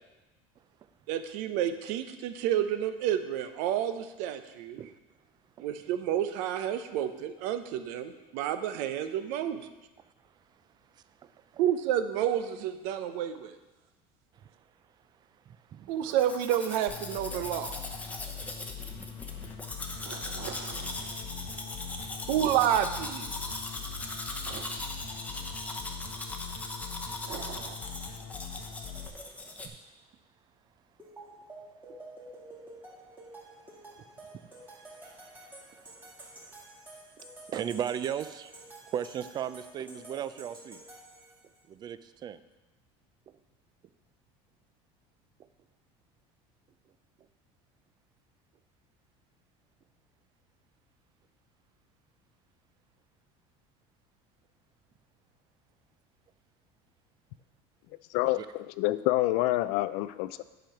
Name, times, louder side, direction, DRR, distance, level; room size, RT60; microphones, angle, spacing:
voice 1, 1.1-4.8 5.6-9.6 11.6-13.6 15.9-17.8 20.0-21.2 22.3-23.3 24.5-24.8 27.3-27.8, right 10 dB, 75° right, 10 dB, 0.7 m, -30 dB
voice 2, 10.9-11.6 14.4-14.5 15.5-15.9 19.5-20.2 21.7-22.2 24.5-24.8 25.2-25.8 26.2-27.1 29.6-29.8 31.9-32.0 34.0-36.1 37.2-38.5 38.9-40.8 41.7-42.4 58.2-58.5, right 9 dB, 35° right, 14 dB, 0.4 m, -39 dB
Domestic sounds home sounds, 16.1-29.7, left 2 dB, 10° left, 0.9 m, -40 dB
sound 1, 16.9-29.1, left 7 dB, 55° left, 0.9 m, -42 dB
sound 2, 31.0-41.6, right 2 dB, 15° right, 2.1 m, -50 dB
voice 3, 58.1-60.4, left 16 dB, 75° left, 14 dB, 0.4 m, -27 dB
9.1 x 5.1 x 5.8 m, 1.1 s
cardioid pair, 130°, 13 cm